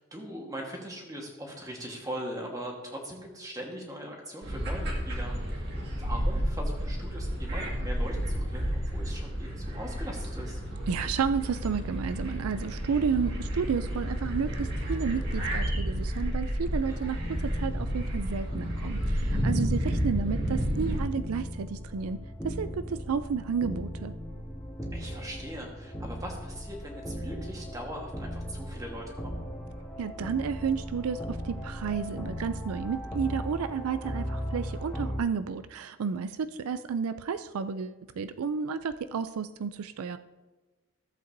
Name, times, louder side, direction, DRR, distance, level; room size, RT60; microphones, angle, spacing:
voice 1, 0.0-5.3 6.0-10.6 16.9-17.2 24.9-29.4, equal, 15° right, 0 dB, 1.4 m, -40 dB
sound 1, 4.4-21.0, equal, 50° right, 1.9 m, -31 dB
voice 2, 10.9-22.2 22.4-24.1 30.0-40.2, right 6 dB, 90° right, 11 dB, 0.4 m, -31 dB
sound 2, 17.2-35.2, equal, 5° left, 2.1 m, -38 dB
14.5 x 7.8 x 2.7 m, 1.2 s
head